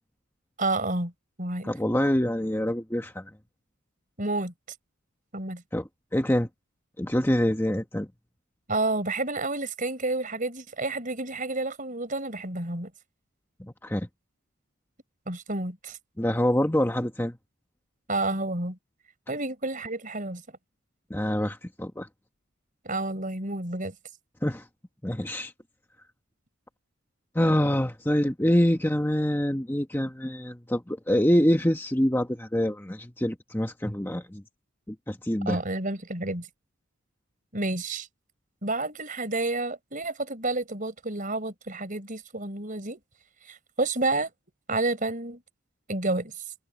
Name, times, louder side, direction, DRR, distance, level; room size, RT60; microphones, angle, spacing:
voice 1, 0.6-1.1 1.4-1.7 4.2-4.5 5.3-5.6 8.7-12.9 15.3-16.0 18.1-18.8 19.3-20.4 22.8-23.9 35.5-36.5 37.5-38.1 38.6-43.0 43.5-44.3 44.7-45.4 45.9-46.3, right 2 dB, 40° right, 4.9 m, -30 dB
voice 2, 1.6-3.3 5.7-6.5 7.0-8.1 13.6-14.1 16.2-17.4 21.1-22.1 24.4-24.6 25.0-25.5 27.3-34.4 34.9-35.6, equal, 10° left, 1.2 m, -25 dB
head